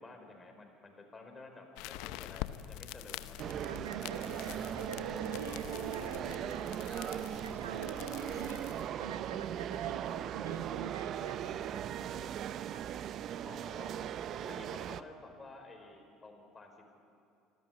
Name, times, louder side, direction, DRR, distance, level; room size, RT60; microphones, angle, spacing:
voice 1, 0.0-3.7 13.4-14.0 14.3-16.9, left 2 dB, 25° left, 3 dB, 5.2 m, -52 dB
sound 1, 1.8-8.9, left 15 dB, 70° left, 0.7 m, -46 dB
sound 2, 3.4-15.0, right 10 dB, 55° right, 0.7 m, -38 dB
voice 2, 3.6-6.8 7.4-8.7 9.0-12.8, right 7 dB, 90° right, 9 dB, 1.1 m, -45 dB
26.5 x 14.0 x 9.8 m, 2.5 s
hypercardioid pair, 65°, 0 cm